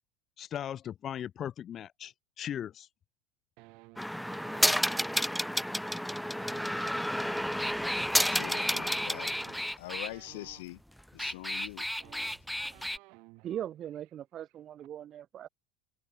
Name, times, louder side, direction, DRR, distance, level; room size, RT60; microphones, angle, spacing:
voice 1, 0.4-2.9, left 10 dB, 30° left, 2.2 m, -38 dB
sound 1, 3.6-5.0 6.3-10.6 11.6-11.7 11.9-13.6 13.9-14.1 14.4-14.9, right 27 dB, 60° right, 1.6 m, -55 dB
sound 2, 4.0-10.1 11.0-13.0, equal, ahead, 0.5 m, -31 dB
voice 2, 8.3-9.3 9.8-10.8 11.1-11.9, left 20 dB, 80° left, 1.4 m, -43 dB
voice 3, 13.4-15.5, right 11 dB, 35° right, 3.5 m, -40 dB
supercardioid pair, 145°, 0 cm